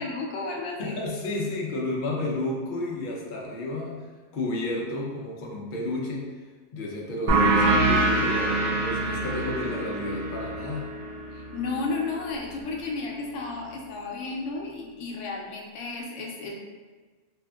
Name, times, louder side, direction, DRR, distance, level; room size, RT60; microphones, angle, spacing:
voice 1, 0.0-1.0 11.3-16.6, left 3 dB, 90° left, -1 dB, 0.9 m, -33 dB
voice 2, 0.8-4.1 4.3-6.3 6.7-10.8, left 2 dB, 55° left, -2 dB, 0.6 m, -31 dB
sound 1, 7.3-12.5, right 2 dB, 75° right, 0.9 m, -25 dB
3.5 x 2.5 x 2.2 m, 1.4 s
omnidirectional pair, 1.2 m